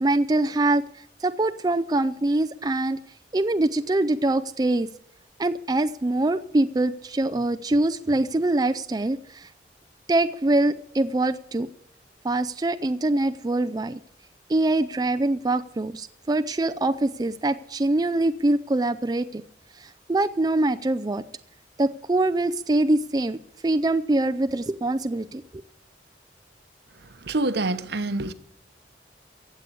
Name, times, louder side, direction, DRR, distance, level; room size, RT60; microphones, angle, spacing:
voice 1, 0.0-3.0 3.3-4.9 5.4-9.5 10.1-11.7 12.2-14.0 14.5-19.4 19.7-21.2 21.8-25.6, right 2 dB, 20° right, 0.4 m, -24 dB
voice 2, 27.3-28.3, right 2 dB, 65° right, 1.0 m, -26 dB
15.5 x 8.2 x 8.4 m
head